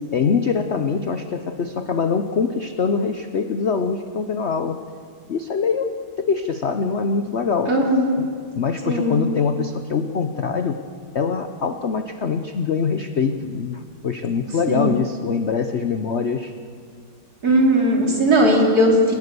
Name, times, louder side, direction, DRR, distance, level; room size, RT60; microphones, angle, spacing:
voice 1, 0.1-4.8 5.3-5.9 6.2-7.8 8.2-8.3 8.6-10.8 11.1-16.5, left 5 dB, 55° left, 8 dB, 0.7 m, -23 dB
voice 2, 7.7-8.1 8.9-9.2 14.7-14.9 17.4-19.1, right 1 dB, 45° right, -1 dB, 4.1 m, -18 dB
29.5 x 18.0 x 6.9 m, 2.2 s
omnidirectional pair, 2.2 m